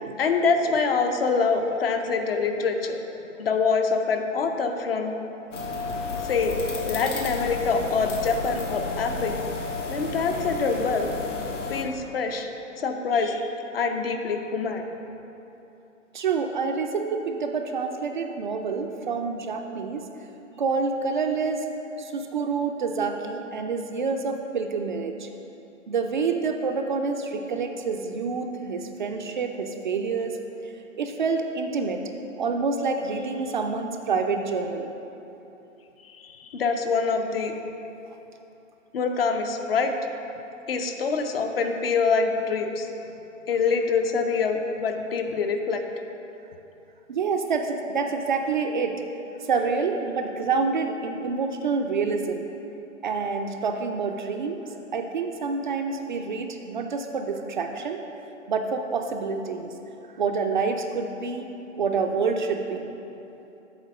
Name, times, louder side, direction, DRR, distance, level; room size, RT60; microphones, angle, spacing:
voice 1, 0.2-3.0 3.4-5.1 6.2-6.6 6.8-9.5 9.9-11.1 11.7-12.5 12.8-14.9 36.0-37.5 38.9-39.9 40.7-42.9 43.5-45.8, left 4 dB, 50° left, 5 dB, 0.7 m, -25 dB
sound 1, 5.5-11.8, left 4 dB, 70° left, 1.1 m, -32 dB
voice 2, 16.1-20.1 20.6-21.7 22.0-25.3 25.9-30.4 31.0-32.0 32.4-34.9 47.1-49.0 49.5-52.5 53.0-54.6 54.9-58.0 58.5-59.7 60.2-61.5 61.8-62.9, right 4 dB, 40° right, 4 dB, 0.4 m, -27 dB
8.0 x 4.1 x 6.0 m, 2.9 s
figure-of-eight pair, 125°, 38 cm